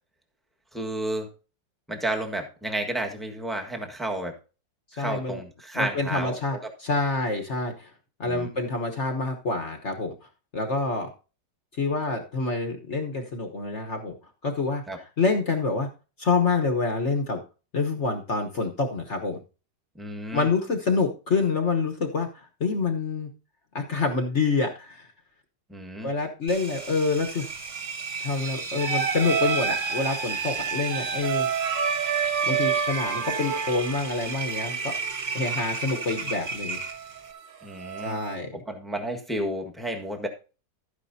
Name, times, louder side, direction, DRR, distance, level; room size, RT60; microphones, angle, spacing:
voice 1, 0.7-1.3 1.9-4.4 4.9-6.3 8.2-8.5 14.9-15.0 19.9-20.5 25.7-26.1 37.6-38.2 38.5-40.3, right 1 dB, ahead, 3 dB, 1.3 m, -31 dB
voice 2, 4.9-5.4 5.7-7.9 8.2-10.1 10.5-11.1 11.8-14.2 14.4-15.9 16.2-17.4 17.7-19.4 20.3-23.3 23.7-25.1 26.0-27.5 28.2-31.5 32.4-34.9 35.3-36.8 38.0-38.5, left 4 dB, 45° left, 4 dB, 1.3 m, -27 dB
Engine, 26.5-37.3, right 4 dB, 35° right, 0.8 m, -33 dB
sound 1, 28.8-38.4, right 7 dB, 75° right, 1.9 m, -30 dB
12.5 x 9.8 x 2.7 m, 0.33 s
omnidirectional pair, 2.0 m